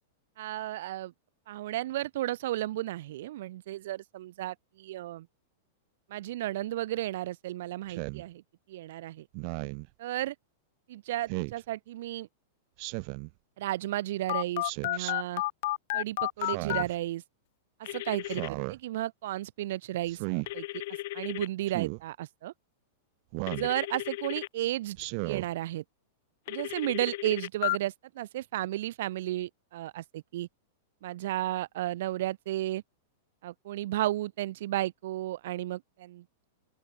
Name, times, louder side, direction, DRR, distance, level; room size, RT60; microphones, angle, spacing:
voice 1, 0.4-1.1 1.5-5.3 6.1-8.4 8.7-9.3 10.0-10.3 10.9-12.3 13.6-15.4 15.9-17.2 17.8-20.2 20.5-20.6 21.1-22.5 23.5-25.0 25.2-25.8 26.5-30.5 31.0-32.8 33.4-36.4, right 15 dB, 65° right, 3.1 m, -33 dB
Speech synthesizer, 7.9-8.2 9.3-9.9 11.3-11.6 12.8-13.3 14.6-15.1 16.4-17.0 18.2-18.8 20.1-20.5 21.7-22.0 23.3-23.7 25.0-25.5, right 40 dB or more, 45° right, 0.8 m, -35 dB
Telephone, 14.3-16.8 17.8-18.5 20.5-21.5 23.5-24.5 26.5-27.8, left 18 dB, 55° left, 1.4 m, -33 dB
open air
supercardioid pair, 155°, 0 cm